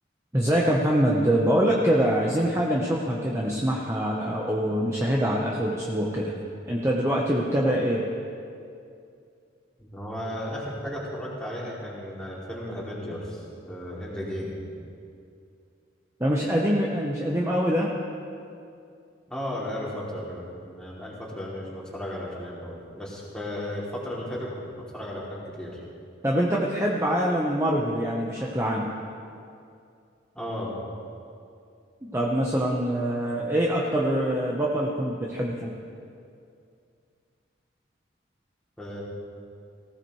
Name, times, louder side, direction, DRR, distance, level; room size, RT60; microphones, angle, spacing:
voice 1, 0.3-6.3 6.7-8.0 16.2-17.9 26.2-28.9 32.0-35.7, equal, 15° right, -3 dB, 1.0 m, -24 dB
voice 2, 9.8-14.6 19.3-24.6 24.9-25.8 30.3-30.8 38.8-39.0, left 1 dB, 5° left, -6 dB, 2.8 m, -35 dB
19.0 x 16.0 x 3.2 m, 2.5 s
head